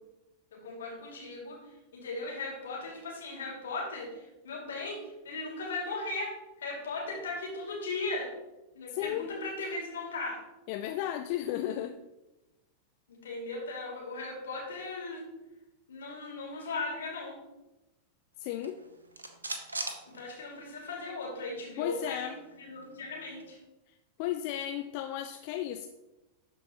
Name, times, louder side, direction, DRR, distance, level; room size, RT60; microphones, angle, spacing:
voice 1, 0.5-8.3 8.7-10.4 11.5-11.7 13.1-15.2 15.9-17.4 20.1-23.6, left 3 dB, 65° left, -2 dB, 2.5 m, -38 dB
voice 2, 8.9-9.3 10.7-11.9 18.4-18.8 21.8-22.4 24.2-25.9, left 12 dB, 45° left, 7 dB, 0.4 m, -34 dB
sound 1, 18.5-20.9 21.2-21.3 21.6-23.5, right 2 dB, 75° right, 0.8 m, -42 dB
12.5 x 4.5 x 3.0 m, 0.99 s
figure-of-eight pair, 90°, 0 cm